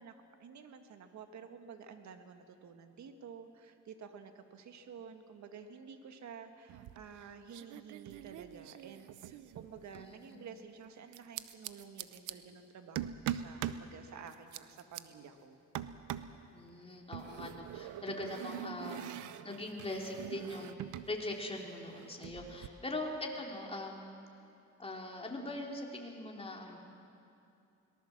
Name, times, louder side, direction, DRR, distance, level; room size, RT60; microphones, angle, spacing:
voice 1, 0.0-15.6 22.9-23.0, right 6 dB, 65° right, 7 dB, 1.9 m, -51 dB
sound 1, 6.7-7.2 7.5-10.1 11.1-12.3 13.0-13.9 14.3-15.0 15.7-16.4 17.1-21.1 21.4-22.7, right 11 dB, 85° right, 0.8 m, -43 dB
voice 2, 9.9-10.4 16.5-19.1 19.4-20.8 21.1-24.0 24.8-26.8, left 2 dB, 20° left, 0 dB, 3.6 m, -41 dB
22.5 x 19.0 x 7.4 m, 2.7 s
cardioid pair, 90°, 30 cm